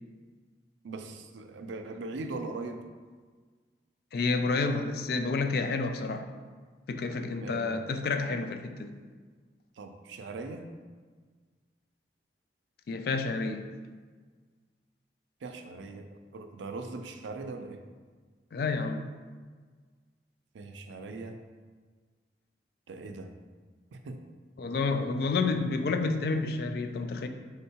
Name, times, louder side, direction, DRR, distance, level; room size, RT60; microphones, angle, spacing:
voice 1, 0.8-2.8 7.4-7.8 9.8-10.7 15.4-17.8 20.5-21.4 22.9-23.3 23.9-24.2, right 3 dB, 90° right, 6 dB, 0.4 m, -40 dB
voice 2, 4.1-6.3 6.9-8.9 12.9-13.7 18.5-19.0 24.6-27.3, left 3 dB, 55° left, 7 dB, 0.3 m, -29 dB
4.5 x 3.6 x 2.8 m, 1.5 s
head